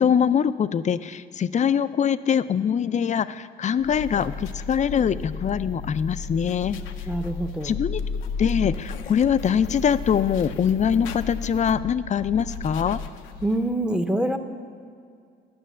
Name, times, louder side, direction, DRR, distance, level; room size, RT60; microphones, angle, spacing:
voice 1, 0.0-6.8 7.6-8.0 8.4-13.0, left 8 dB, 35° left, 14 dB, 0.4 m, -23 dB
sound 1, 3.8-13.7, left 5 dB, 90° left, 0.7 m, -34 dB
voice 2, 7.1-7.7 13.4-14.4, right 1 dB, 5° right, 8 dB, 0.7 m, -25 dB
11.0 x 6.5 x 8.4 m, 2.3 s
cardioid pair, 90°, 20 cm